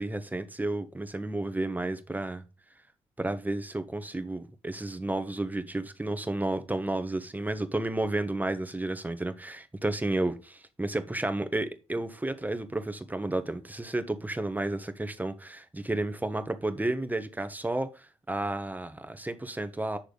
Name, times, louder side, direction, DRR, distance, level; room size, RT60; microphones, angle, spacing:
voice 1, 0.0-2.4 3.2-20.0, right 2 dB, 10° right, 1.3 m, -32 dB
8.6 x 6.5 x 4.0 m
figure-of-eight pair, 40°, 15 cm